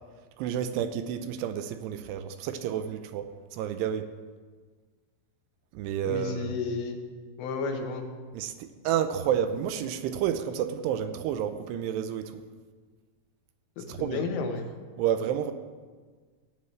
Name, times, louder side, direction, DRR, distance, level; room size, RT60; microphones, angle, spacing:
voice 1, 0.4-4.1 5.7-6.5 8.3-12.4 13.9-14.3 15.0-15.5, right 9 dB, 80° right, 9 dB, 2.6 m, -30 dB
voice 2, 6.1-7.0 7.4-8.1 13.8-14.7, left 4 dB, 90° left, 4 dB, 3.4 m, -32 dB
16.0 x 9.5 x 3.2 m, 1.5 s
omnidirectional pair, 5.0 m